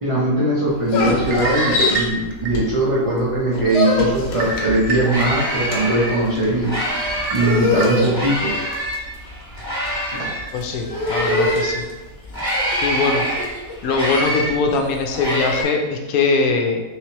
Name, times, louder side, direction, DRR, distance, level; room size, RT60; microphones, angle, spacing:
voice 1, 0.0-6.7 7.3-8.5 10.1-10.3, right 1 dB, 40° right, -6 dB, 0.5 m, -20 dB
sound 1, 0.7-3.0 3.3-15.7, left 2 dB, 55° left, 0.9 m, -25 dB
sound 2, 1.2-3.0 3.5-3.6 4.4-5.4 5.9-6.0 7.3-8.4 8.8-8.9 9.7-10.0, right 3 dB, 70° right, 1.0 m, -28 dB
sound 3, 4.5-4.6 4.8-7.6 8.0-11.9 12.3-15.6, equal, 15° left, 1.2 m, -26 dB
voice 2, 10.5-11.8 12.8-13.2 13.8-16.8, left 4 dB, 85° left, 2 dB, 1.0 m, -21 dB
3.3 x 3.2 x 2.9 m, 1.1 s
omnidirectional pair, 1.5 m